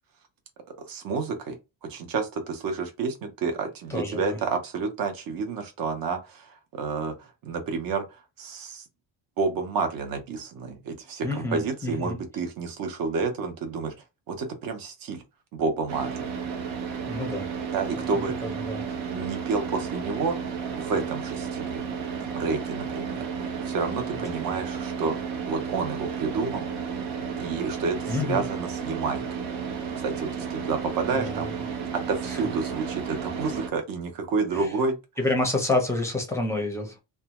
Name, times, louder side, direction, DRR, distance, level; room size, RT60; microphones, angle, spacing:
voice 1, 0.8-8.8 9.4-13.9 14.3-15.2 15.5-16.3 17.7-18.4 19.1-21.8 22.2-25.2 25.5-26.7 27.4-29.2 30.0-31.6 32.1-35.0, right 4 dB, 50° right, 0.7 m, -30 dB
voice 2, 3.9-4.4 11.2-12.2 17.1-17.5 18.0-18.8 28.1-28.4 31.1-31.5 32.3-32.4 34.5-34.7 35.2-37.0, left 2 dB, 5° left, 0.5 m, -29 dB
Car / Idling, 15.9-33.7, right 6 dB, 90° right, 0.8 m, -33 dB
2.5 x 2.2 x 2.9 m
cardioid pair, 170°, 46 cm